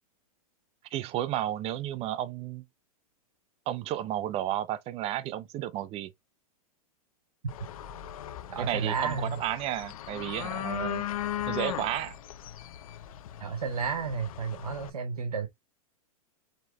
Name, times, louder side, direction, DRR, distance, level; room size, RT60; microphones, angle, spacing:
voice 1, 0.9-2.6 3.7-6.1 8.6-11.0 11.5-12.2, right 12 dB, 30° right, 0.6 m, -32 dB
sound 1, 7.5-14.9, left 12 dB, 70° left, 0.6 m, -38 dB
voice 2, 8.5-9.4 13.4-15.5, right 5 dB, 90° right, 0.8 m, -32 dB
4.5 x 4.4 x 2.2 m
hypercardioid pair, 115°, 19 cm